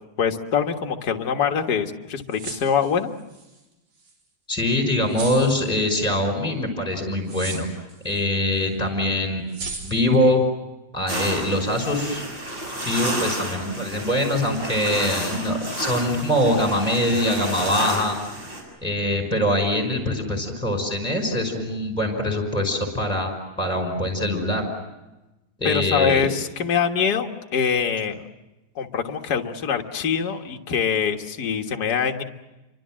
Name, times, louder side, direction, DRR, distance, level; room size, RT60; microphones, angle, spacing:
voice 1, 0.2-3.1 25.6-28.2 28.7-32.2, left 7 dB, 40° left, 4 dB, 1.6 m, -24 dB
sound 1, 2.2-3.6 4.0-4.1 5.1-5.7 7.3-8.2 8.6-8.7 9.5-10.2, right 3 dB, 80° right, 5.5 m, -36 dB
voice 2, 4.5-7.7 8.0-9.4 9.8-10.4 10.9-12.2 12.9-18.2 18.8-23.3 23.6-24.6 25.6-26.3, left 1 dB, ahead, 3 dB, 5.2 m, -23 dB
sound 2, 11.1-18.6, equal, 45° right, 8.3 m, -31 dB
29.0 x 25.0 x 7.5 m, 1.0 s
omnidirectional pair, 3.4 m